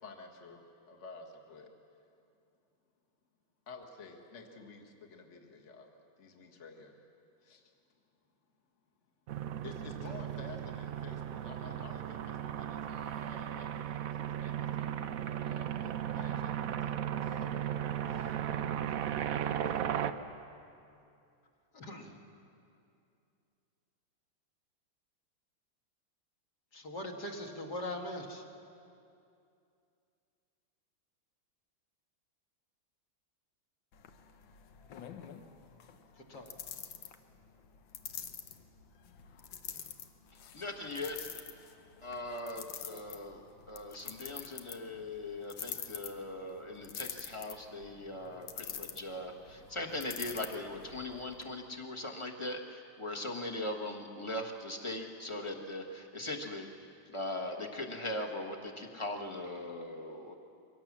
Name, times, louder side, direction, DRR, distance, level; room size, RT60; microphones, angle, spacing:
voice 1, 0.0-1.7 3.7-5.9 6.2-7.0 7.4-7.7 9.6-17.0 17.2-17.5 18.1-18.4, left 3 dB, 35° left, 2 dB, 1.8 m, -52 dB
sound 1, 9.3-20.1, right 10 dB, 70° right, 0.8 m, -36 dB
voice 2, 21.7-22.2 26.7-28.4 36.3-36.5 43.8-44.3, left 1 dB, 55° left, 2 dB, 2.3 m, -41 dB
sound 2, 33.9-51.4, left 8 dB, 75° left, 1.7 m, -47 dB
voice 3, 40.5-41.4 42.0-56.7 57.1-60.3, left 1 dB, 15° left, 2 dB, 1.2 m, -40 dB
23.5 x 17.5 x 7.3 m, 2.6 s
omnidirectional pair, 2.2 m